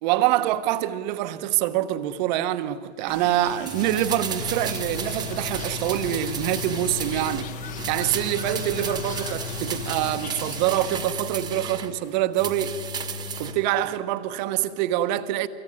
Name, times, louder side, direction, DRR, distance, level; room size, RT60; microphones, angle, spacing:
voice 1, 0.0-12.8 13.4-15.5, right 13 dB, 35° right, 1.1 m, -25 dB
sound 1, 3.1-11.1, left 6 dB, 20° left, 1.2 m, -40 dB
sound 2, 3.7-7.5 7.8-11.9 12.3-13.6 13.9-14.0, right 3 dB, 10° right, 1.3 m, -33 dB
sound 3, 4.4-10.2, left 2 dB, 40° left, 1.7 m, -37 dB
25.5 x 22.5 x 9.9 m
hypercardioid pair, 130°, 37 cm